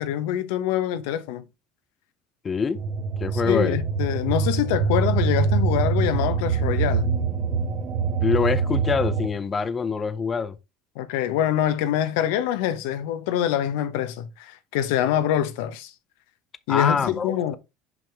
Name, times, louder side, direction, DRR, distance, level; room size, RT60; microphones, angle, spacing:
voice 1, 0.0-1.4 3.3-7.1 11.0-15.9 16.7-17.6, left 11 dB, 80° left, 0.9 m, -25 dB
voice 2, 2.4-2.8 3.2-3.8 8.2-10.6 16.7-17.5, left 5 dB, 25° left, 0.6 m, -25 dB
sound 1, 2.7-9.3, right 5 dB, 40° right, 1.4 m, -24 dB
6.1 x 5.4 x 3.4 m
supercardioid pair, 120°, 0 cm